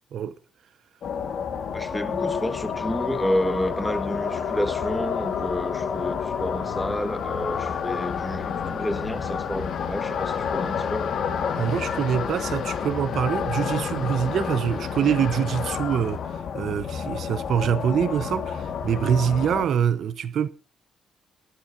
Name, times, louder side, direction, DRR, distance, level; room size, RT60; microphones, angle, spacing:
sound 1, 1.0-19.7, left 7 dB, 65° left, 1.6 m, -29 dB
voice 1, 1.7-11.1, left 1 dB, 5° left, 1.6 m, -30 dB
voice 2, 11.6-20.5, right 8 dB, 65° right, 0.8 m, -25 dB
21.0 x 12.0 x 2.7 m
cardioid pair, 90°, 0 cm